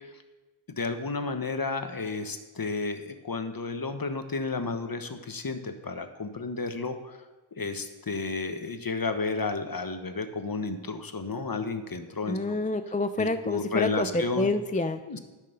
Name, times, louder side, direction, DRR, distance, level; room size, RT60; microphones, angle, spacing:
voice 1, 0.8-7.2 7.6-12.6 13.2-14.5 15.1-15.2, left 3 dB, 45° left, 8 dB, 1.2 m, -32 dB
voice 2, 12.3-15.0, left 2 dB, 15° left, 9 dB, 0.5 m, -28 dB
10.5 x 6.7 x 6.7 m, 1.2 s
cardioid pair, 40°, 49 cm